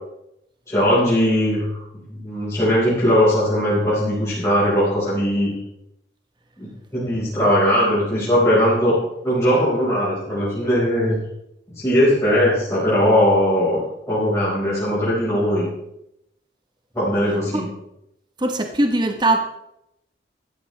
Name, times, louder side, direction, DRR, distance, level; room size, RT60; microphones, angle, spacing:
voice 1, 0.7-1.7 1.9-5.5 6.6-9.0 9.2-11.2 11.7-13.8 14.1-15.6 16.9-17.6, equal, 15° left, -10 dB, 5.2 m, -19 dB
voice 2, 18.4-19.4, right 2 dB, 25° right, 5 dB, 1.2 m, -20 dB
15.5 x 14.0 x 3.4 m, 0.83 s
head